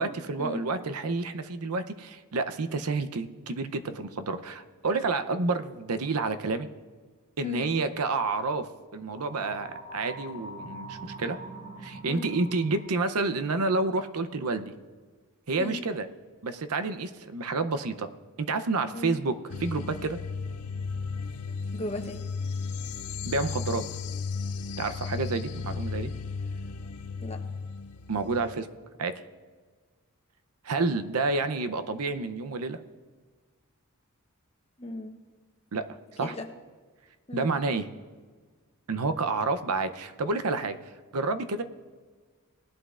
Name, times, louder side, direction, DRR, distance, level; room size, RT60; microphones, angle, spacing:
voice 1, 0.0-6.7 7.4-11.4 11.8-14.7 15.5-16.1 16.4-18.1 18.4-20.2 23.3-23.8 24.8-26.1 28.1-28.7 29.0-29.1 30.6-32.8 35.7-35.9 36.2-36.4 37.3-37.9 38.9-40.8 41.1-41.6, right 3 dB, 85° right, 10 dB, 0.7 m, -29 dB
sound 1, 9.1-13.1, right 1 dB, 25° right, 2.7 m, -43 dB
sound 2, 19.5-28.6, left 4 dB, 80° left, 0.5 m, -35 dB
voice 2, 21.7-22.2 27.2-27.4 34.8-35.2 36.2-36.5 37.3-37.5, left 1 dB, 30° left, 4 dB, 0.9 m, -36 dB
19.0 x 11.5 x 2.5 m, 1.5 s
head